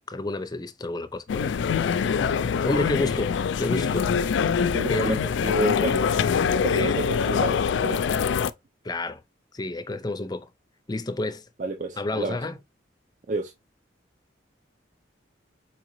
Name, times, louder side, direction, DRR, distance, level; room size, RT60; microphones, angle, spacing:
voice 1, 0.0-1.6 2.6-4.5 4.8-5.3 6.7-6.9 8.8-9.2 9.5-10.5 10.9-11.4 12.0-12.6, left 2 dB, 20° left, 0.5 m, -30 dB
sound 1, 1.3-8.5, left 6 dB, 75° left, 0.3 m, -24 dB
voice 2, 4.7-5.1 5.4-6.1 6.5-8.1 11.6-12.4 13.3-13.5, right 3 dB, 45° right, 0.5 m, -29 dB
4.5 x 3.8 x 3.0 m
head